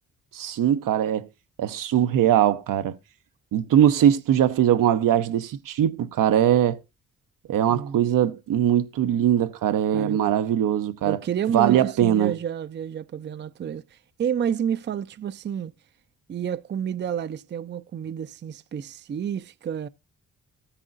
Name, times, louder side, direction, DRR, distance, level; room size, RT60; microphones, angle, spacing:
voice 1, 0.3-1.3 1.6-2.9 3.5-6.8 7.5-11.2 11.5-12.3, right 10 dB, 75° right, 0.8 m, -21 dB
voice 2, 7.7-8.0 9.9-10.2 11.0-15.7 16.3-19.9, right 8 dB, 35° right, 0.4 m, -30 dB
13.5 x 9.9 x 2.5 m
cardioid pair, 75°, 32 cm